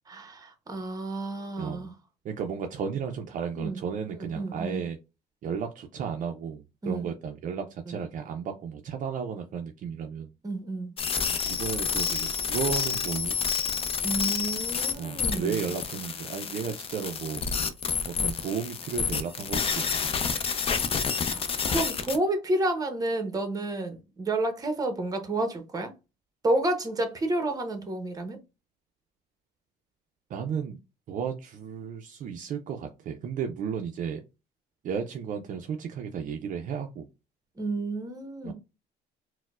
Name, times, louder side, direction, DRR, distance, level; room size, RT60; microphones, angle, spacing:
voice 1, 0.1-1.9 3.6-3.8 4.3-4.8 6.8-7.1 7.9-8.0 10.4-10.9 14.0-15.7 21.3-25.9 26.4-28.4 37.6-38.5, right 2 dB, 20° right, 0.8 m, -30 dB
voice 2, 1.6-1.9 2.2-5.0 5.4-10.3 11.5-13.4 15.0-17.5 18.2-20.2 30.3-30.8 31.1-34.2 34.8-37.1 38.4-38.5, right 7 dB, 50° right, 0.4 m, -34 dB
sound 1, 11.0-22.2, left 6 dB, 35° left, 0.5 m, -29 dB
4.2 x 2.0 x 2.3 m
cardioid pair, 110°, 17 cm